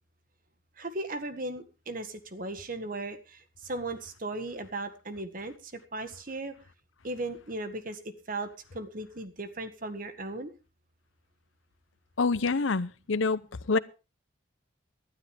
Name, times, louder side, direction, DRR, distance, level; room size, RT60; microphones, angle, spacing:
voice 1, 0.8-5.5 5.9-6.5 7.0-8.0 8.3-8.5 8.7-10.5, right 2 dB, 45° right, 1.6 m, -36 dB
voice 2, 12.2-13.8, left 4 dB, 80° left, 0.8 m, -27 dB
19.0 x 12.0 x 3.5 m
head